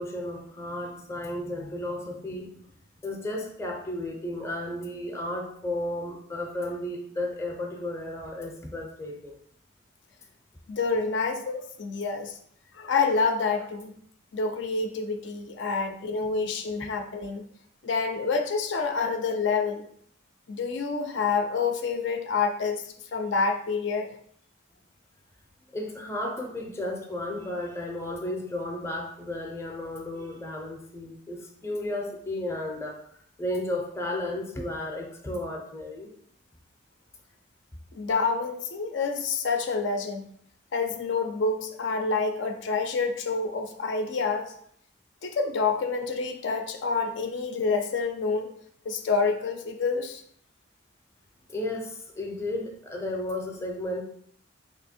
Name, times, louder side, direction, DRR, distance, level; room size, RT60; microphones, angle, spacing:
voice 1, 0.0-2.7 3.0-9.4 25.7-33.0 33.4-36.1 51.5-54.0, left 1 dB, 15° left, 1 dB, 0.5 m, -33 dB
voice 2, 10.7-12.4 12.7-13.9 14.3-17.4 17.8-19.8 20.5-24.2 37.9-40.3 40.7-44.5 45.2-48.5 48.9-50.2, left 4 dB, 70° left, 5 dB, 0.4 m, -28 dB
2.9 x 2.6 x 4.2 m, 0.65 s
head